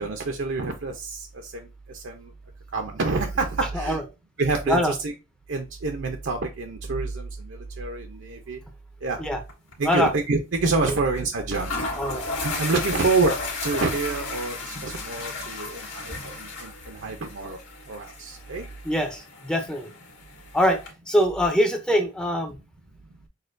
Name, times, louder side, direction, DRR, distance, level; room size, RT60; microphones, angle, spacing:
voice 1, 0.0-2.3 2.7-4.0 4.4-5.1 5.5-8.6 9.0-9.3 9.8-11.7 12.4-13.3 13.6-17.6 17.9-18.7, right 3 dB, 70° right, 4 dB, 0.6 m, -27 dB
sound 1, 9.5-9.7 10.0-10.1 11.1-11.2 11.5-20.9, left 3 dB, 85° left, 1.7 m, -34 dB
voice 2, 12.0-12.3 18.8-19.9 20.5-20.8 21.1-22.6, equal, 5° left, 5 dB, 0.5 m, -23 dB
6.5 x 2.2 x 2.5 m, 0.27 s
head